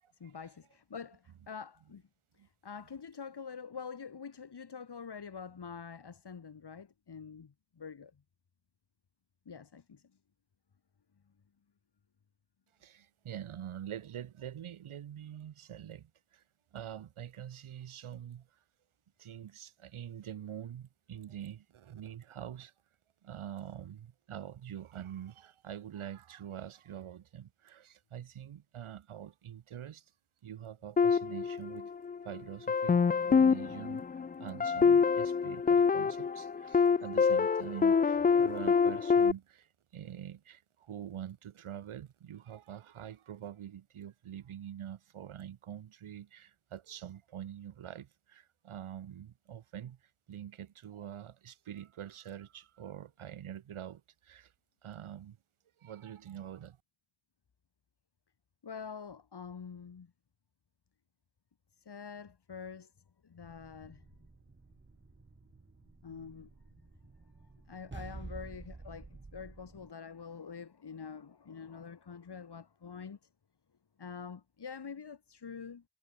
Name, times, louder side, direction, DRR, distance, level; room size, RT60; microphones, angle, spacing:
voice 1, 0.2-2.0 2.4-8.1 9.5-10.0 58.6-60.1 61.9-62.9 63.2-64.0 66.0-66.5 67.7-73.2 74.0-75.8, left 6 dB, 55° left, 2.5 m, -46 dB
voice 2, 12.8-16.4 16.7-18.6 19.2-22.7 23.2-30.1 30.4-31.9 32.2-50.0 50.3-54.5 54.8-55.4 55.8-56.8, right 10 dB, 90° right, 2.4 m, -45 dB
sound 1, 31.0-32.2 32.7-39.3, left 5 dB, 20° left, 0.4 m, -26 dB
sound 2, 63.4-69.9, right 3 dB, 25° right, 1.5 m, -50 dB
cardioid pair, 45°, 48 cm